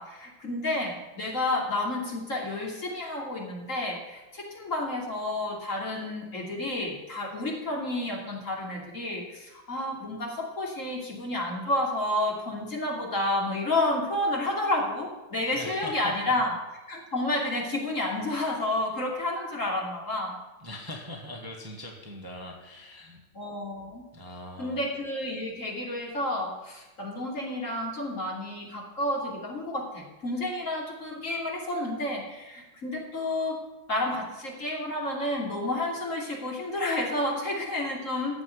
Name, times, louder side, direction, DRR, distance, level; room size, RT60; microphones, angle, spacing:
voice 1, 0.0-16.5 16.9-20.4 23.3-24.0 24.6-38.4, left 1 dB, 35° left, -1 dB, 3.2 m, -30 dB
voice 2, 15.5-16.1 20.6-23.2 24.1-24.8, left 1 dB, 10° right, 0 dB, 1.5 m, -41 dB
15.0 x 6.1 x 9.6 m, 1.1 s
omnidirectional pair, 2.3 m